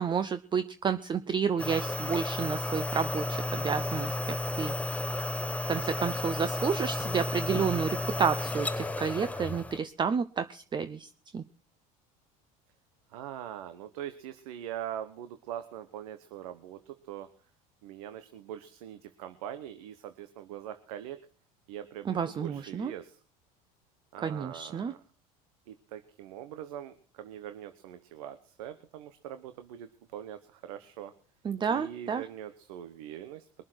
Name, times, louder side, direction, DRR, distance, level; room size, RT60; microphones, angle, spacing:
voice 1, 0.0-4.7 5.7-11.4 22.1-22.9 24.2-24.9 31.4-32.2, right 6 dB, 25° right, 12 dB, 0.7 m, -30 dB
sound 1, 1.6-9.8, left 1 dB, 10° left, 1.0 m, -33 dB
voice 2, 13.1-17.3 17.8-21.2 21.7-23.2 24.1-25.0 25.7-31.1 31.7-33.5, right 10 dB, 80° right, 10 dB, 1.2 m, -42 dB
22.5 x 7.6 x 6.3 m, 0.43 s
supercardioid pair, 105°, 18 cm